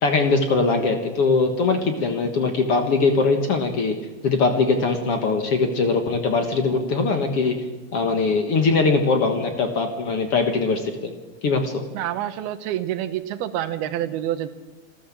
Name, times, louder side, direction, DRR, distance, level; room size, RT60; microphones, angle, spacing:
voice 1, 0.0-4.0 4.2-7.6 7.9-11.1 11.4-11.8, left 4 dB, 55° left, 5 dB, 1.8 m, -21 dB
voice 2, 11.9-14.5, right 12 dB, 85° right, 11 dB, 3.0 m, -27 dB
27.0 x 13.0 x 7.3 m, 1.3 s
omnidirectional pair, 4.4 m